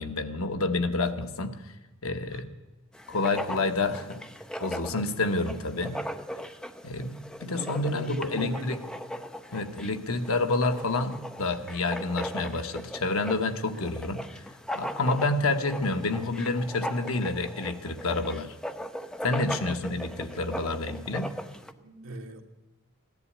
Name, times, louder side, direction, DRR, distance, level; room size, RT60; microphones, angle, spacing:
voice 1, 0.0-1.7 2.0-2.5 3.1-4.2 4.6-6.0 6.8-8.8 9.5-14.4 14.7-18.5 19.2-21.3, left 2 dB, 80° left, 7 dB, 1.2 m, -29 dB
Writing, 2.9-21.7, equal, 5° left, 0.5 m, -39 dB
voice 2, 7.4-8.8 21.8-22.4, right 1 dB, 70° right, 3 dB, 1.7 m, -38 dB
15.5 x 10.5 x 8.5 m, 1.1 s
head